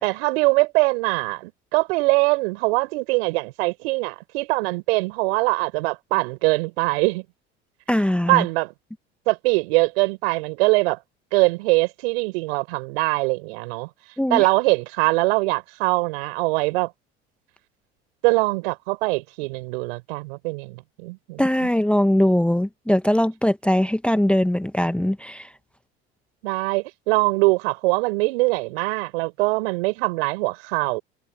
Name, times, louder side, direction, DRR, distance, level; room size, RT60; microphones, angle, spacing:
voice 1, 0.0-7.2 8.3-8.7 9.3-11.0 11.3-13.9 14.3-16.9 18.2-21.4 26.4-31.0, right 26 dB, 70° right, 4.4 m, -22 dB
voice 2, 7.9-8.4 14.2-14.5 21.4-25.5, left 1 dB, 5° left, 1.2 m, -21 dB
hypercardioid pair, 75°, 32 cm